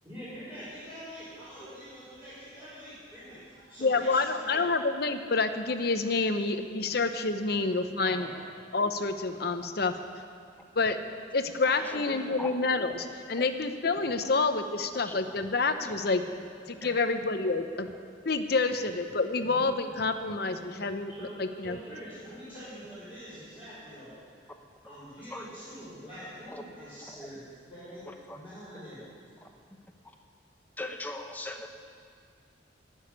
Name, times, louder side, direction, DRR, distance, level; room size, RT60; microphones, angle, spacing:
voice 1, 0.0-4.6 8.0-8.3 11.6-12.3 16.7-17.0 18.6-18.7 21.1-21.4 21.6-24.5 24.9-27.4 27.7-29.5, equal, 10° right, -15 dB, 4.5 m, -45 dB
voice 2, 3.8-8.3 8.7-9.9 10.8-11.0 11.3-16.2 16.7-17.9 18.2-21.1 21.4-21.8, left 3 dB, 55° left, 8 dB, 0.8 m, -28 dB
voice 3, 16.7-17.0 17.9-18.0 19.5-19.8 20.3-20.7 21.9-22.0 25.2-25.5 26.5-26.6 27.1-27.3 28.3-28.4 29.4-29.5 30.0-30.1 30.8-31.7, left 2 dB, 10° left, 4 dB, 0.9 m, -41 dB
15.0 x 6.4 x 9.9 m, 2.3 s
head